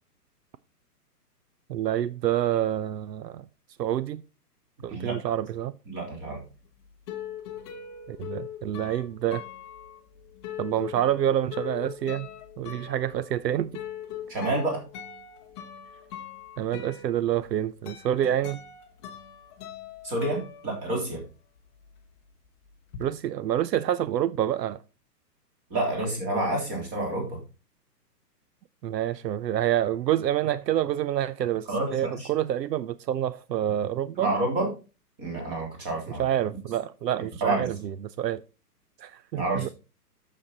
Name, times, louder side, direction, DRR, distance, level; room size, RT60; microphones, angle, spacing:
voice 1, 1.7-3.4 3.8-4.2 4.8-5.7 8.1-9.4 10.6-12.3 12.6-13.8 16.6-18.6 23.0-24.8 28.8-34.3 36.2-38.4 39.0-39.7, right 11 dB, 80° right, 0.7 m, -27 dB
voice 2, 5.9-6.4 14.3-14.8 20.0-21.2 25.7-27.4 31.7-32.3 34.2-34.7 35.2-36.2 37.4-37.7 39.3-39.7, right 2 dB, 20° right, 3.4 m, -28 dB
sound 1, 6.5-21.3 21.6-23.0, left 9 dB, 15° left, 0.8 m, -41 dB
8.7 x 7.1 x 4.1 m
hypercardioid pair, 160°, 49 cm